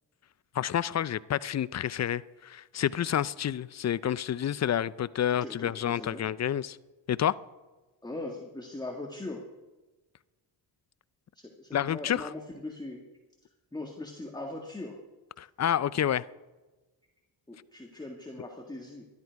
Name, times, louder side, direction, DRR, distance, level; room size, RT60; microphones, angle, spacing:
voice 1, 0.5-6.8 7.1-7.4 11.7-12.3 15.4-16.2, left 10 dB, 35° left, 0.5 m, -29 dB
voice 2, 5.3-6.3 8.0-9.4 11.3-13.1 13.7-15.0 17.5-19.0, left 2 dB, 10° left, 1.7 m, -40 dB
12.5 x 12.0 x 4.6 m
cardioid pair, 70°, 46 cm